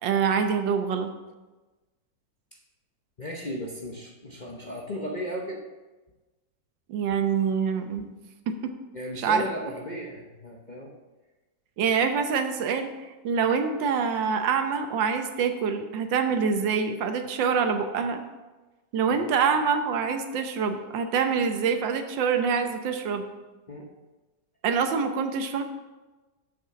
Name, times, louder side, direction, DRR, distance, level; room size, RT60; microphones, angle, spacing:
voice 1, 0.0-1.1 6.9-8.1 8.5-8.7 9.2-9.4 11.8-12.9 13.2-18.2 18.9-23.2 24.6-25.6, right 6 dB, 85° right, 7 dB, 1.5 m, -25 dB
voice 2, 3.2-5.6 8.9-10.9 23.7-23.9, equal, 40° left, -2 dB, 0.7 m, -35 dB
7.4 x 6.5 x 5.8 m, 1.2 s
omnidirectional pair, 2.0 m